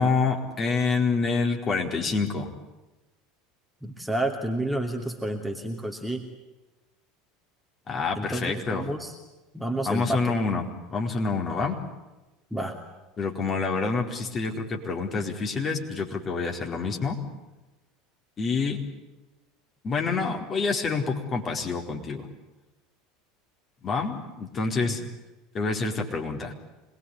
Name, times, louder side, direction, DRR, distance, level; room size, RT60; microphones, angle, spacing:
voice 1, 0.0-2.5 7.9-8.8 9.8-10.6 10.9-11.8 13.2-17.2 18.4-18.8 19.8-22.3 23.8-25.0 25.5-26.5, left 4 dB, 30° left, 2 dB, 4.4 m, -27 dB
voice 2, 3.8-6.3 8.2-9.1 9.5-10.3 12.5-12.8 24.8-25.0, right 1 dB, ahead, 2 dB, 2.8 m, -30 dB
26.5 x 21.0 x 9.9 m, 1.1 s
figure-of-eight pair, 75°, 0 cm